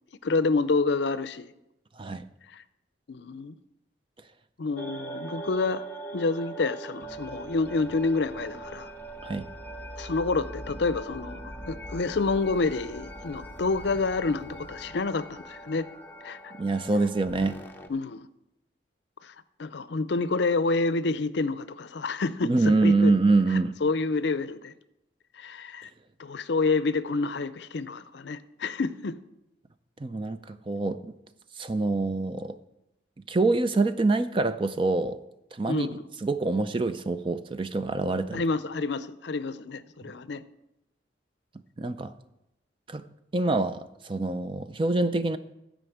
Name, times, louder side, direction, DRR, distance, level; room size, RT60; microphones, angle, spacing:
voice 1, 0.2-1.5 2.5-2.6 3.1-3.5 4.6-5.8 6.1-8.9 10.0-15.9 16.2-16.5 17.9-18.3 19.2-19.3 19.6-22.5 22.8-23.1 23.8-24.7 25.4-25.9 26.2-29.2 35.7-36.0 38.3-40.4, left 3 dB, 65° left, 15 dB, 0.5 m, -28 dB
voice 2, 2.0-2.3 9.2-9.5 16.5-17.6 22.4-23.7 30.0-31.1 31.6-32.6 33.3-35.2 35.5-35.9 36.2-38.4 41.8-42.1 42.9-43.0 43.3-45.4, right 3 dB, 25° right, 11 dB, 0.4 m, -25 dB
sound 1, 4.7-17.9, right 1 dB, 10° left, 0.7 m, -41 dB
13.5 x 5.1 x 7.8 m, 0.87 s
head